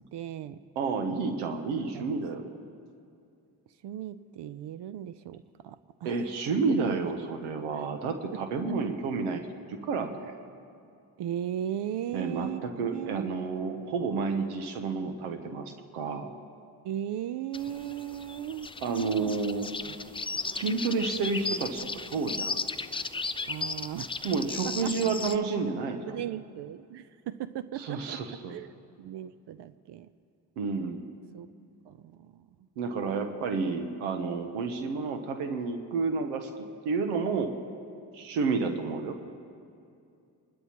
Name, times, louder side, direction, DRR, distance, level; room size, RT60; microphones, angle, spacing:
voice 1, 0.1-0.6 1.9-2.2 3.8-6.2 6.7-7.1 7.7-7.8 8.3-8.4 8.7-8.8 11.2-12.6 12.9-13.3 16.8-19.4 19.8-20.2 23.5-24.2 24.6-24.9 26.1-28.7 29.0-30.1 31.3-31.5 31.9-32.7 38.6-39.0, right 11 dB, 55° right, 14 dB, 0.6 m, -37 dB
voice 2, 0.8-2.5 6.0-10.4 12.1-16.3 18.8-19.7 20.5-22.6 24.2-26.3 27.8-28.5 30.6-31.0 32.8-36.5 36.8-37.5 38.1-39.2, right 4 dB, 85° right, 7 dB, 0.9 m, -30 dB
sound 1, 17.5-25.4, left 4 dB, 10° left, 0.4 m, -36 dB
28.0 x 12.5 x 2.9 m, 2.5 s
hypercardioid pair, 45°, 50 cm